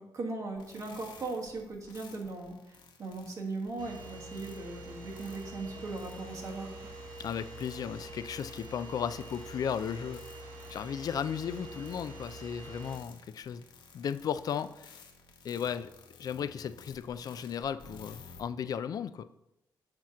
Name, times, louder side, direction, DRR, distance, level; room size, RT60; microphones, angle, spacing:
voice 1, 0.0-6.7, right 3 dB, 45° right, -1 dB, 1.4 m, -39 dB
sound 1, 0.6-18.4, left 5 dB, 80° left, 0.8 m, -56 dB
sound 2, 3.8-13.0, right 1 dB, 70° right, 1.5 m, -46 dB
voice 2, 7.2-10.2 10.7-13.6 13.9-14.9 15.4-15.9 16.2-19.3, left 8 dB, 55° left, 13 dB, 0.3 m, -35 dB
7.6 x 2.9 x 6.1 m, 0.88 s
cardioid pair, 135°, 8 cm